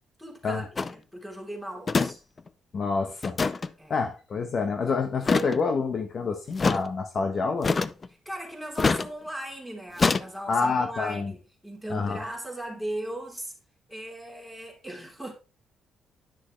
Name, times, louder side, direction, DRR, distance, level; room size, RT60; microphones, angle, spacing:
voice 1, 0.2-2.2 3.8-4.0 8.2-13.5 13.9-15.3, right 1 dB, ahead, 3.4 m, -38 dB
sound 1, 0.8-1.0 1.9-2.1 2.4-2.5 3.2-3.7 5.2-5.6 6.6-6.8 7.6-8.1 8.8-9.1 10.0-10.2, left 4 dB, 30° left, 0.5 m, -24 dB
voice 2, 2.7-3.4 3.9-7.7 10.5-11.3 11.9-12.2, left 4 dB, 50° left, 1.1 m, -27 dB
10.0 x 6.3 x 3.2 m
cardioid pair, 90°, 0 cm